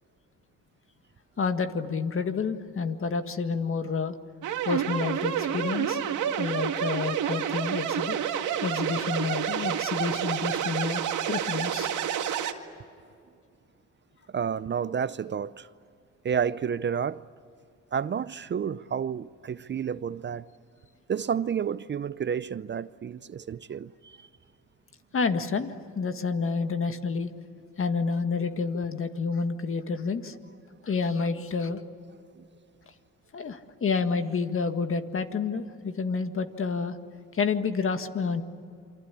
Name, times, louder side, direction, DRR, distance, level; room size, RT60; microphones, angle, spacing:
voice 1, 1.4-4.2 4.7-6.0 6.4-8.2 8.6-11.9 25.1-27.3 27.8-30.4 30.8-31.8 33.3-37.0 37.3-38.4, left 5 dB, 45° left, 1.9 m, -29 dB
sound 1, 4.4-12.5, right 9 dB, 80° right, 2.0 m, -29 dB
voice 2, 14.3-15.7 16.2-17.2 17.9-20.5 21.1-24.3 32.4-32.5, right 7 dB, 40° right, 0.6 m, -30 dB
28.0 x 24.5 x 8.5 m
cardioid pair, 90°, 30 cm